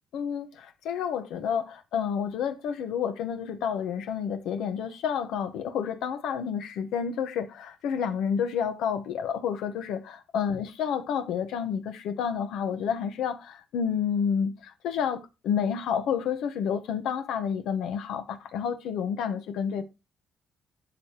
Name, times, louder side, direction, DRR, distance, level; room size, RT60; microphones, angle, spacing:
voice 1, 0.1-19.8, left 7 dB, 85° left, 0.9 m, -30 dB
13.0 x 5.1 x 2.9 m
cardioid pair, 90°, 0 cm